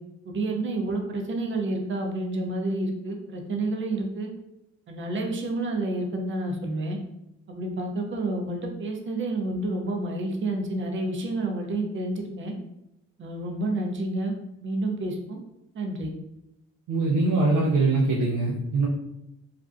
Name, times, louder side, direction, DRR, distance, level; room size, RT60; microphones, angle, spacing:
voice 1, 0.3-4.3 4.9-7.0 7.5-12.5 13.2-14.3 14.6-15.4 15.7-16.1, right 2 dB, 40° right, 2 dB, 0.5 m, -29 dB
voice 2, 16.9-18.9, right 3 dB, 90° right, -2 dB, 0.5 m, -22 dB
2.5 x 2.1 x 2.5 m, 0.87 s
cardioid pair, 90°, 30 cm